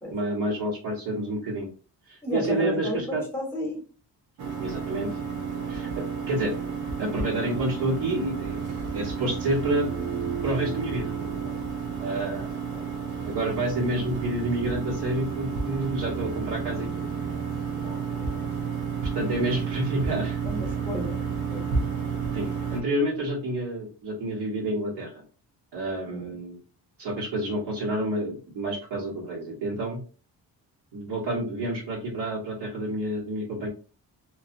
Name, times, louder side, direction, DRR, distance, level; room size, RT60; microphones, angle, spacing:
voice 1, 0.1-1.7 2.1-3.2 4.6-5.1 5.7-5.9 6.3-6.5 7.0-8.6 8.9-9.9 10.4-11.1 12.0-12.5 13.2-17.0 19.1-20.4 22.3-25.2 25.7-26.6 27.0-30.0 30.9-33.7, right 1 dB, 90° right, -4 dB, 1.3 m, -29 dB
voice 2, 2.2-3.8 12.0-12.9 17.8-18.5 20.4-21.2 21.5-21.7 26.1-26.4, left 1 dB, 5° left, 0 dB, 0.8 m, -34 dB
sound 1, 4.4-22.8, right 6 dB, 65° right, 0.8 m, -31 dB
2.6 x 2.3 x 2.6 m, 0.36 s
cardioid pair, 150°, 40 cm